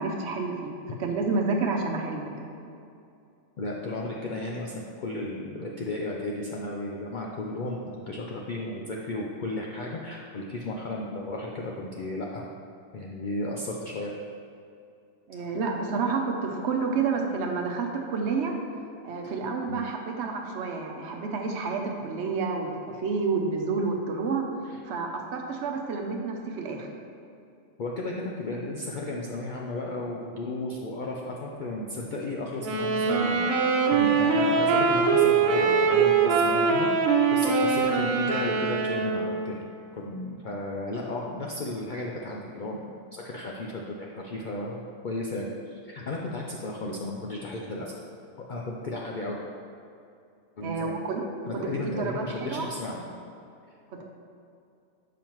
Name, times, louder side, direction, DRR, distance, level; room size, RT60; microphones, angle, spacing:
voice 1, 0.0-2.5 15.3-18.5 19.0-24.5 24.8-26.9 50.6-51.3 51.5-52.7 53.9-54.0, right 4 dB, 65° right, 2 dB, 0.8 m, -29 dB
voice 2, 3.6-12.5 12.9-14.1 19.2-19.3 19.7-19.8 24.7-24.8 27.8-33.5 33.9-39.7 39.9-42.8 43.1-48.0 48.5-49.4 50.6-50.9 51.5-53.0 54.0-54.1, left 2 dB, 65° left, -2 dB, 0.4 m, -34 dB
sound 1, 32.6-39.4, right 5 dB, 90° right, 1.0 m, -23 dB
7.1 x 5.0 x 3.0 m, 2.6 s
omnidirectional pair, 1.4 m